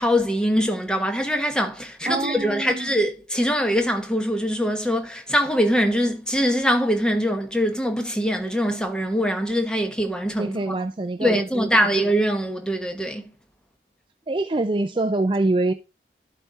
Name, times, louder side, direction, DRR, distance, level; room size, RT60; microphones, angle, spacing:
voice 1, 0.0-10.7 11.2-13.3, equal, 5° left, 1.1 m, -23 dB
voice 2, 2.1-2.9 10.4-11.7 14.3-15.7, right 2 dB, 30° right, 0.4 m, -25 dB
12.0 x 4.2 x 4.6 m
head